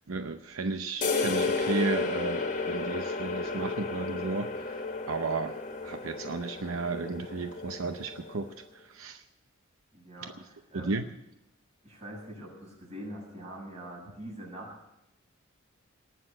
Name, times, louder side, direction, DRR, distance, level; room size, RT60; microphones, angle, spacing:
voice 1, 0.1-8.5 8.7-9.2 10.7-11.0, right 3 dB, 75° right, 8 dB, 0.7 m, -34 dB
sound 1, 1.0-8.5, left 3 dB, 40° left, 1.7 m, -33 dB
voice 2, 9.9-11.0 11.8-14.8, right 1 dB, 35° right, -2 dB, 7.3 m, -44 dB
19.0 x 6.8 x 9.8 m, 0.87 s
head